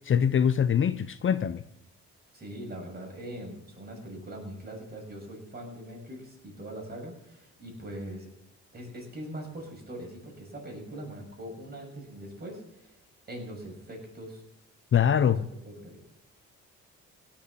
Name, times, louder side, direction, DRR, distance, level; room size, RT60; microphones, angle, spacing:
voice 1, 0.0-1.6 14.9-15.5, left 8 dB, 40° left, 0.7 m, -23 dB
voice 2, 2.3-8.3 8.7-12.9 13.3-14.4 15.2-15.4 15.6-16.0, right 1 dB, 30° right, 6.9 m, -42 dB
17.5 x 7.2 x 7.4 m
cardioid pair, 90°, 30 cm